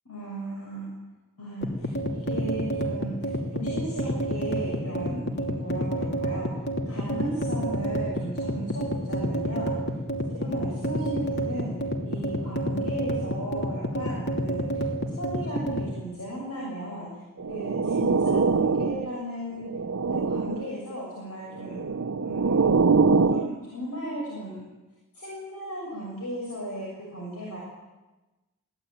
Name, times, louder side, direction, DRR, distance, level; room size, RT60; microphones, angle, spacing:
voice 1, 0.1-0.9 1.4-6.5 6.9-9.7 10.3-11.7 12.0-17.1 17.5-19.6 20.1-21.8 22.2-22.7 23.3-24.6 25.1-27.6, right 1 dB, 90° left, -4 dB, 7.2 m, -36 dB
sound 1, 1.6-15.9, right 1 dB, 50° left, 3.0 m, -29 dB
sound 2, 17.4-19.2 19.6-20.7 21.6-23.5, right 4 dB, 75° right, 0.7 m, -23 dB
23.0 x 17.0 x 9.2 m, 1.1 s
head